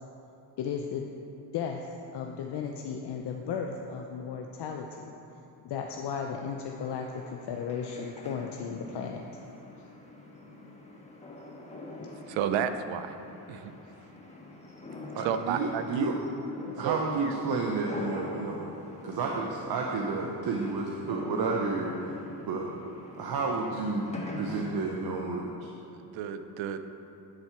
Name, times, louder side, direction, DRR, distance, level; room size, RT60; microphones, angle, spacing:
voice 1, 0.6-1.0 1.5-5.1 5.6-9.2, left 6 dB, 65° left, 2 dB, 0.6 m, -35 dB
sound 1, 6.6-24.8, left 2 dB, 15° left, 1.3 m, -44 dB
voice 2, 12.3-13.2 13.5-13.7 15.2-16.2 16.8-17.3 26.0-26.8, right 8 dB, 85° right, 9 dB, 0.6 m, -32 dB
voice 3, 15.1-16.1 16.7-18.7 19.0-22.1 22.4-22.7 23.2-25.5, right 3 dB, 55° right, 0 dB, 0.8 m, -31 dB
10.5 x 4.5 x 4.4 m, 2.8 s
cardioid pair, 80°, 44 cm